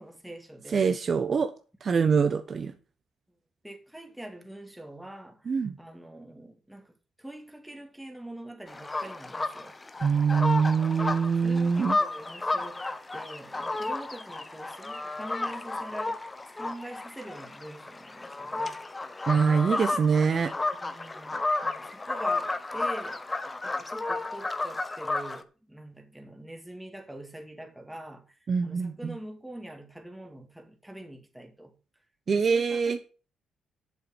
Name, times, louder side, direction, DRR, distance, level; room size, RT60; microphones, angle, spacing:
voice 1, 0.0-1.0 3.6-6.9 7.2-9.8 11.1-12.9 13.1-16.2 16.5-18.8 20.6-23.2 23.6-31.7 32.3-33.0, right 1 dB, 5° right, 2.4 m, -44 dB
voice 2, 0.7-1.5 1.8-2.7 5.5-5.7 10.0-12.0 19.3-20.5 28.5-29.2 32.3-33.0, right 5 dB, 45° right, 0.9 m, -24 dB
sound 1, 8.7-25.4, left 2 dB, 20° left, 1.0 m, -32 dB
7.6 x 7.0 x 7.9 m
cardioid pair, 90°, 0 cm